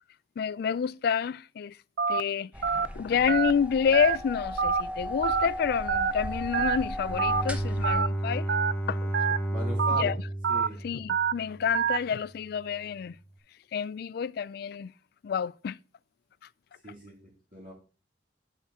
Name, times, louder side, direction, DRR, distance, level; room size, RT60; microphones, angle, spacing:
voice 1, 0.4-1.8 2.1-2.5 2.9-8.5 8.9-9.1 10.0-10.2 10.8-13.2 13.7-14.9 15.2-15.8, left 7 dB, 60° left, 0.3 m, -28 dB
Telephone, 2.0-2.2 2.6-2.9 3.3-3.5 3.9-4.2 4.6-4.8 5.2-5.5 5.9-6.1 6.5-6.8 7.2-7.4 7.8-8.1 8.5-8.7 9.1-9.4 9.8-10.0 10.4-10.7 11.1-11.3 11.7-12.0, right 6 dB, 70° right, 0.4 m, -26 dB
sound 1, 2.5-8.0, equal, 10° right, 0.8 m, -36 dB
Bowed string instrument, 6.6-11.9, right 1 dB, 10° left, 1.0 m, -32 dB
voice 2, 9.5-10.1 10.5-10.8 16.8-17.1 17.5-17.7, left 1 dB, 50° right, 3.2 m, -39 dB
11.0 x 6.5 x 3.6 m
head